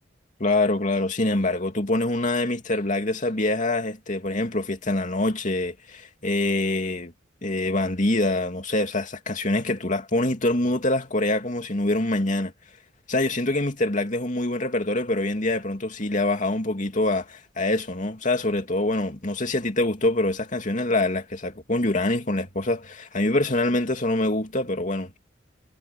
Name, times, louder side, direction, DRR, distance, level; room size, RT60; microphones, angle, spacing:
voice 1, 0.4-7.1 7.4-12.5 13.1-25.2, left 2 dB, 45° left, 2.7 m, -25 dB
head